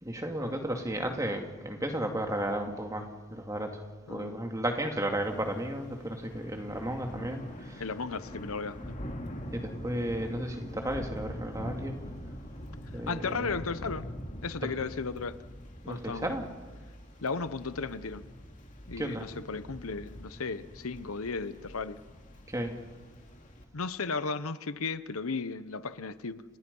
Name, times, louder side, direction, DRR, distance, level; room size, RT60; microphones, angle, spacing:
voice 1, 0.0-7.8 9.5-12.0 12.9-13.5 14.6-14.7 15.8-16.5 19.0-19.3 22.5-22.7, right 1 dB, 15° right, 3 dB, 2.5 m, -34 dB
voice 2, 4.1-4.4 7.8-9.0 13.1-14.1 14.4-15.4 15.9-16.4 17.2-18.3 18.9-22.0 23.7-26.4, left 4 dB, 75° left, 13 dB, 0.9 m, -35 dB
Thunder / Rain, 5.2-23.6, equal, 35° left, 2.9 m, -44 dB
30.0 x 26.5 x 5.5 m, 1.4 s
head